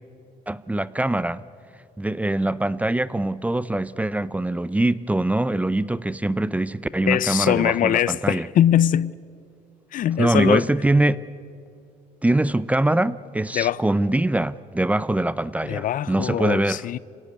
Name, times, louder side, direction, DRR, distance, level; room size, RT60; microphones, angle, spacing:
voice 1, 0.5-1.4 2.0-8.5 10.2-11.2 12.2-16.8, right 1 dB, 10° right, 0.5 m, -23 dB
voice 2, 7.0-9.1 9.9-10.7 13.5-13.8 15.6-17.0, left 11 dB, 55° left, 0.5 m, -22 dB
26.5 x 17.0 x 9.6 m
cardioid pair, 110°, 17 cm